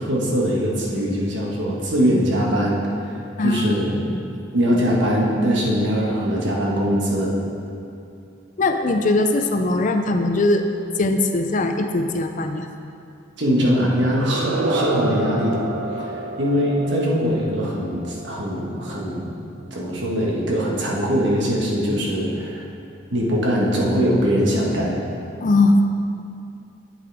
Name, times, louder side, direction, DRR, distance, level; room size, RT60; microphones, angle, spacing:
voice 1, 0.0-4.0 4.5-7.4 13.4-15.7 16.0-19.3 19.7-22.6 23.1-25.0, equal, 60° right, -3 dB, 1.5 m, -22 dB
voice 2, 3.4-3.8 4.1-4.2 8.6-10.6 11.0-12.7 16.0-16.1 25.4-25.9, left 2 dB, 40° left, 6 dB, 0.4 m, -20 dB
sound 1, 14.1-18.9, right 2 dB, 80° right, 0.6 m, -28 dB
8.6 x 8.3 x 3.5 m, 2.5 s
head